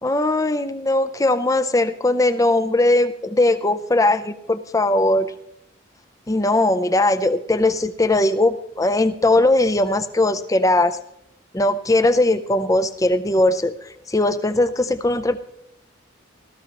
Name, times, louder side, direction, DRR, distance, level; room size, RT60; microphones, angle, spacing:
voice 1, 0.0-5.3 6.3-11.0 11.5-13.7 14.1-15.4, left 2 dB, 15° left, 11 dB, 0.5 m, -19 dB
18.0 x 13.5 x 3.0 m, 0.76 s
head